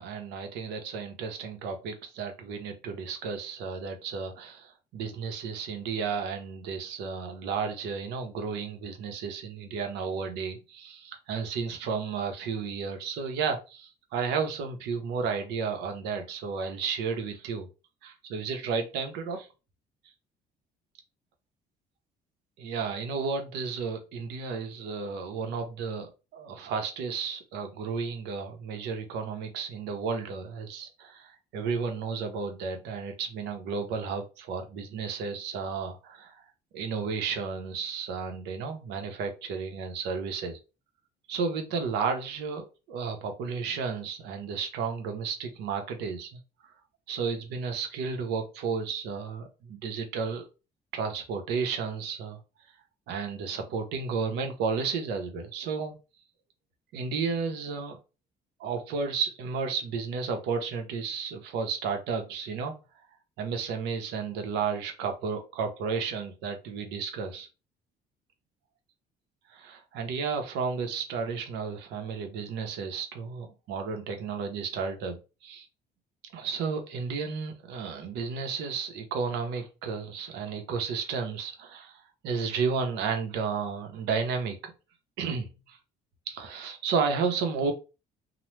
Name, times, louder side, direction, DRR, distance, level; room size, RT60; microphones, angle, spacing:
voice 1, 0.0-17.7 18.0-19.5 22.6-36.4 36.7-40.6 41.3-46.4 47.1-50.5 50.9-52.4 53.1-55.9 56.9-58.0 58.6-62.7 63.4-67.5 69.5-75.7 76.3-84.7 85.2-85.8 86.3-87.7, right 5 dB, 85° right, 0.7 m, -32 dB
2.9 x 2.0 x 3.1 m
cardioid pair, 110°, 17 cm